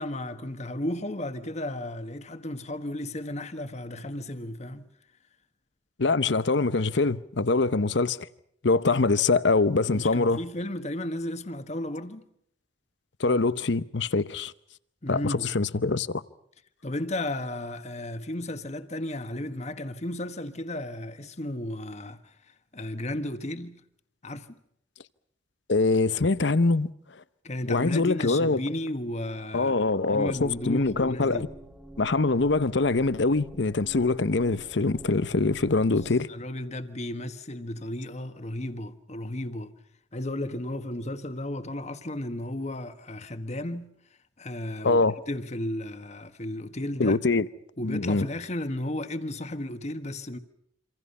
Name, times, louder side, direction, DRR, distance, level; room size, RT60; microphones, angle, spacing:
voice 1, 0.0-4.9 9.9-12.2 15.0-15.5 16.8-23.8 24.2-24.6 27.4-31.5 35.9-39.7 40.1-43.9 44.4-47.2 47.8-50.4, left 1 dB, 40° left, 1.5 m, -34 dB
voice 2, 6.0-8.2 8.6-10.4 13.2-14.5 15.1-16.2 25.7-26.9 27.7-28.6 29.5-31.5 32.0-36.3 44.8-45.2 47.0-47.5 47.8-48.3, left 3 dB, 75° left, 0.9 m, -24 dB
sound 1, 30.2-36.2, right 1 dB, 5° right, 2.1 m, -47 dB
27.0 x 26.5 x 5.6 m
head